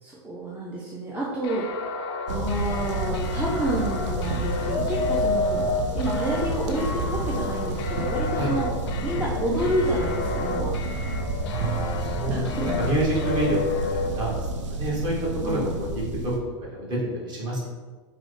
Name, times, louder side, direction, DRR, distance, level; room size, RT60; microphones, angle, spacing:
voice 1, 0.0-1.7 2.3-5.6 5.9-8.7 9.0-10.8 11.9-12.7 15.4-15.8, right 1 dB, 10° right, -6 dB, 0.4 m, -29 dB
sound 1, 1.4-14.4, left 4 dB, 60° left, 0.4 m, -31 dB
sound 2, 2.3-16.4, right 2 dB, 85° right, 0.5 m, -30 dB
voice 2, 11.5-14.4 14.7-15.1 15.4-15.9 16.2-16.3 16.6-17.7, right 1 dB, 30° right, -4 dB, 1.0 m, -28 dB
3.7 x 2.1 x 3.1 m, 1.4 s
hypercardioid pair, 130°, 15 cm